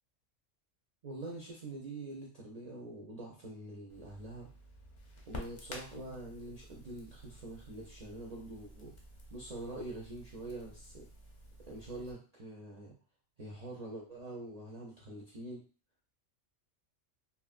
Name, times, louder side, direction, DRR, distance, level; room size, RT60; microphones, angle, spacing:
voice 1, 1.0-4.5 5.3-8.9 9.3-11.1 11.6-12.9 13.4-15.6, right 2 dB, 50° right, -4 dB, 0.5 m, -45 dB
Crackle, 3.9-12.1, left 1 dB, 50° left, 0.6 m, -51 dB
3.0 x 2.3 x 2.4 m, 0.38 s
omnidirectional pair, 1.3 m